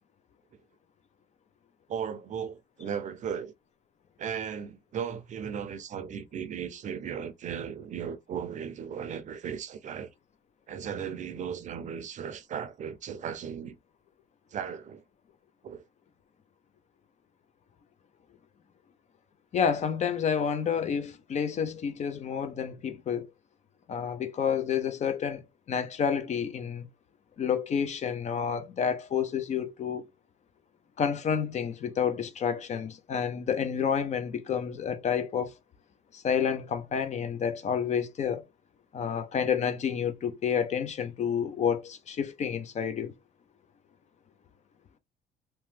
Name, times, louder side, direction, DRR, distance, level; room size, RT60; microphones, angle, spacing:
voice 1, 1.9-3.5 4.2-10.1 10.7-13.8 14.5-15.0 15.6-15.8, right 7 dB, 45° right, 0.5 m, -36 dB
voice 2, 19.5-23.3 23.9-26.8 27.4-30.0 31.0-35.5 36.1-38.4 38.9-43.1, left 7 dB, 45° left, 0.6 m, -29 dB
2.9 x 2.2 x 3.2 m
cardioid pair, 110°, 17 cm